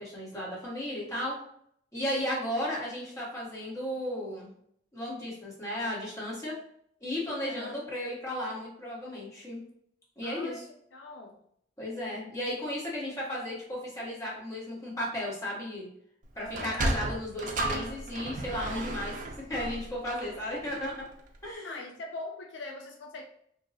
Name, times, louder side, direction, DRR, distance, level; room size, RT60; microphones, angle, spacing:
voice 1, 0.0-1.4 1.9-4.5 4.9-6.5 7.0-9.6 10.2-10.6 11.8-15.9 16.4-21.0 21.4-21.8, left 1 dB, 15° left, -6 dB, 1.2 m, -34 dB
voice 2, 7.4-7.8 10.2-10.6 10.9-11.4 16.3-16.8 21.6-23.2, left 2 dB, 65° left, 2 dB, 0.4 m, -42 dB
Sliding door, 16.4-21.1, right 2 dB, 45° right, 0.4 m, -34 dB
2.7 x 2.2 x 4.0 m, 0.68 s
head